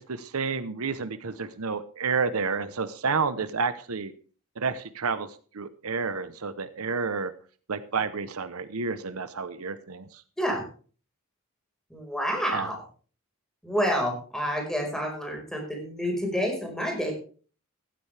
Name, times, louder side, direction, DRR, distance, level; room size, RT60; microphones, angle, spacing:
voice 1, 0.0-4.1 4.6-7.3 7.7-10.2 12.5-12.7, right 5 dB, 85° right, 13 dB, 0.9 m, -30 dB
voice 2, 11.9-12.8 13.6-17.1, equal, 5° left, 1 dB, 4.8 m, -28 dB
15.0 x 13.0 x 3.4 m, 0.41 s
head